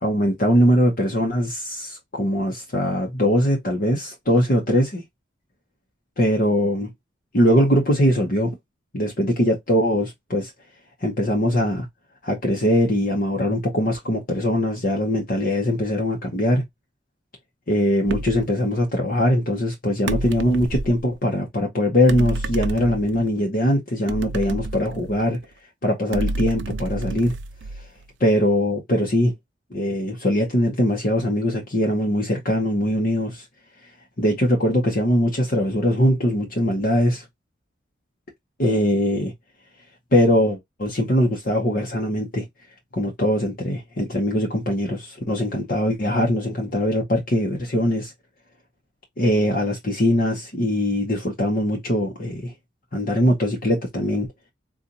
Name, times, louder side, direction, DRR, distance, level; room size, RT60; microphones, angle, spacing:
voice 1, 0.0-5.0 6.2-6.9 7.3-8.6 8.9-10.5 11.0-11.9 12.2-16.6 17.7-25.4 25.8-27.3 27.7-27.9 28.2-29.3 29.7-33.5 34.2-37.3 38.6-39.3 40.1-42.5 42.9-48.1 49.2-52.5 52.9-54.3, equal, 50° left, 0.9 m, -21 dB
sound 1, 18.1-18.5 20.1-21.0 22.1-23.3 24.1-25.4 26.1-28.0, right 2 dB, 70° right, 0.5 m, -29 dB
3.8 x 2.5 x 2.8 m
head